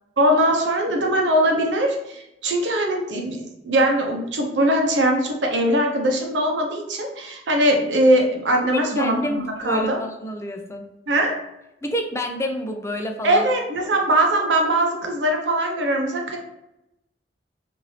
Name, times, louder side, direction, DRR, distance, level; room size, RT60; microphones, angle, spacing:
voice 1, 0.2-10.0 11.1-11.4 13.2-16.4, right 1 dB, 90° right, 2 dB, 0.7 m, -21 dB
voice 2, 8.7-10.9 11.8-13.4, equal, 15° left, 4 dB, 0.4 m, -28 dB
3.2 x 2.5 x 2.8 m, 0.86 s
head